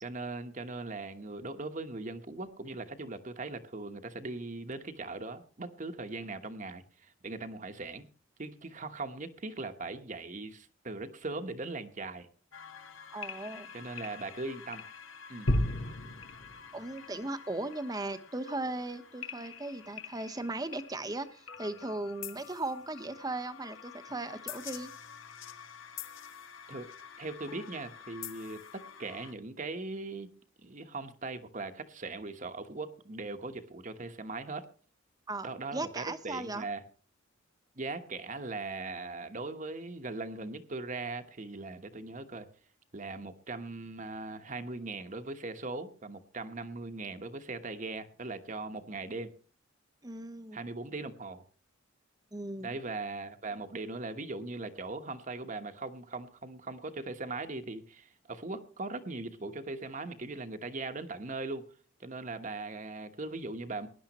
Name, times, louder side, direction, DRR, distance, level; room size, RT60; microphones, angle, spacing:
voice 1, 0.0-8.1 8.4-12.3 13.7-14.8 15.3-15.5 26.7-26.9 27.2-30.3 30.6-34.7 35.4-36.8 37.7-42.5 42.9-49.3 50.5-51.4 52.6-61.7 62.0-63.9, right 3 dB, 40° right, 1.2 m, -40 dB
sound 1, 12.5-29.3, left 2 dB, 80° left, 1.5 m, -41 dB
voice 2, 13.1-13.7 16.7-24.9 35.3-36.7 50.0-50.7 52.3-52.8, right 2 dB, 20° right, 1.0 m, -37 dB
19.5 x 11.0 x 3.0 m
head